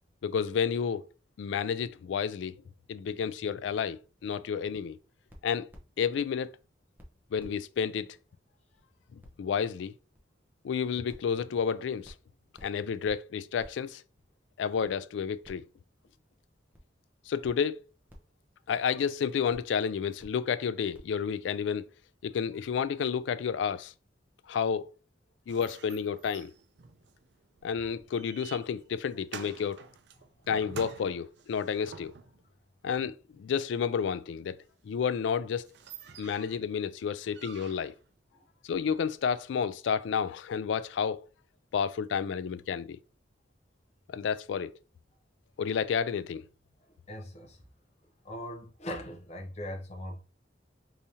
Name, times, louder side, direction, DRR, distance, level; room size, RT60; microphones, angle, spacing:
voice 1, 0.2-1.0 1.4-2.5 2.9-5.0 5.4-5.7 6.0-6.5 7.3-8.1 9.4-9.9 10.6-12.1 12.6-14.0 14.6-15.6 17.3-17.8 18.7-21.8 22.2-23.9 24.5-24.9 25.5-26.5 27.6-29.8 30.5-32.1 32.8-34.6 34.8-35.7 36.2-37.9 38.7-41.2 41.7-43.0 44.1-44.7 45.6-46.4, left 7 dB, 80° left, 0.3 m, -30 dB
sound 1, 5.3-6.2 6.6-6.7 7.0-7.1 7.4-7.6 7.8-7.9 8.3-8.4 8.7-8.8 9.2-9.3 9.7-9.8 10.1-10.2 10.6-10.7 11.1-11.3 11.6-11.7 12.0-12.3 12.5-12.7 13.0-13.2 13.6-13.7 14.2-14.3 14.8-14.9 15.4-15.8 16.1-16.2 16.7-16.8 17.4-17.5 18.1-18.3 18.8-18.9 19.5-19.7 20.2-20.3 20.9-21.0, equal, 10° right, 0.7 m, -52 dB
sound 2, 25.5-32.5 34.9-35.0 35.3-35.4 35.6-36.7 37.3-38.1, right 6 dB, 65° right, 0.5 m, -49 dB
voice 2, 47.1-47.6 48.2-50.2, left 1 dB, 35° left, 0.7 m, -40 dB
4.8 x 2.7 x 2.8 m
head